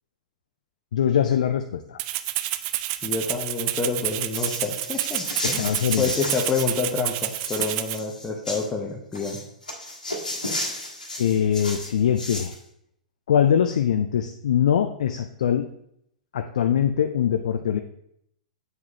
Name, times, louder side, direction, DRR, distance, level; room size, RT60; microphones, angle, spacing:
voice 1, 0.9-2.0 5.4-6.1 7.6-7.7 10.3-10.4 11.2-12.5 13.3-15.7 16.3-17.8, left 9 dB, 60° left, 7 dB, 0.4 m, -22 dB
Rattle (instrument), 2.0-8.0, right 15 dB, 35° right, 0.3 m, -29 dB
voice 2, 3.0-9.4, left 4 dB, 15° left, -1 dB, 0.9 m, -28 dB
sound 1, 4.3-6.7 7.0-8.7 9.1-12.6, left 1 dB, 85° left, 1.4 m, -33 dB
7.9 x 4.7 x 2.9 m, 0.73 s
figure-of-eight pair, 105°, 4 cm